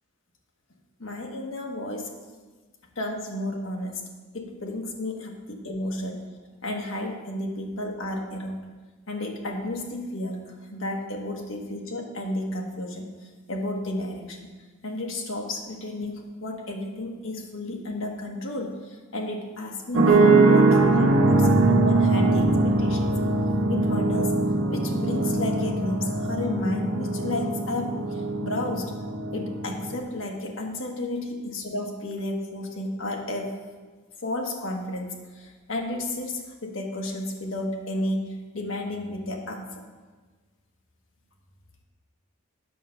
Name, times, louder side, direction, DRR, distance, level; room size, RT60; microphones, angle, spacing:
voice 1, 1.0-2.1 3.0-4.0 4.3-6.2 6.6-8.6 9.1-13.1 13.5-14.5 14.8-23.1 23.7-24.3 24.7-28.9 29.3-33.5 34.2-39.8, left 1 dB, 65° left, 1 dB, 1.3 m, -32 dB
sound 1, 19.9-30.0, right 2 dB, 75° right, 0.9 m, -22 dB
8.4 x 6.5 x 5.7 m, 1.4 s
head